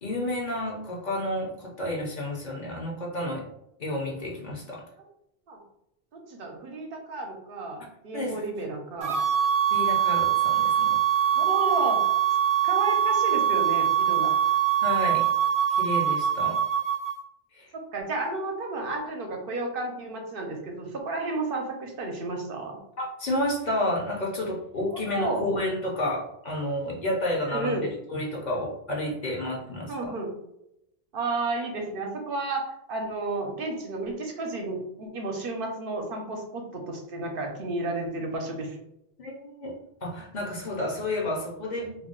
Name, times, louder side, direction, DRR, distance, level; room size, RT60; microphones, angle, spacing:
voice 1, 0.0-3.4 3.8-4.8 8.1-8.5 9.7-11.0 14.8-15.3 15.7-16.6 17.5-17.7 23.0-30.1 39.2-39.7 40.0-42.1, left 1 dB, 50° left, -2 dB, 0.7 m, -31 dB
voice 2, 6.1-9.2 11.3-12.0 12.6-14.3 17.7-22.8 24.9-25.5 27.5-27.9 29.9-30.3 31.1-38.8, right 2 dB, 65° right, 2 dB, 0.8 m, -32 dB
sound 1, 9.0-17.2, right 9 dB, 25° right, 0.4 m, -23 dB
2.5 x 2.0 x 3.7 m, 0.82 s
omnidirectional pair, 1.0 m